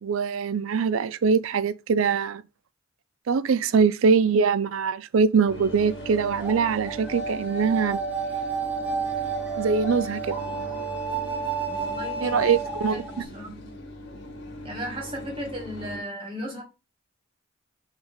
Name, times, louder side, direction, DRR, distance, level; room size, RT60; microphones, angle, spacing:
voice 1, 0.0-2.4 3.3-8.0 9.6-10.4 12.2-13.2, right 5 dB, 75° right, 0.4 m, -23 dB
sound 1, 5.5-16.0, left 1 dB, 55° left, 2.1 m, -40 dB
sound 2, 5.6-13.2, right 5 dB, 10° right, 1.3 m, -31 dB
voice 2, 11.7-12.4 12.9-13.7 14.6-16.6, equal, 25° right, 2.2 m, -36 dB
6.3 x 3.6 x 4.8 m
head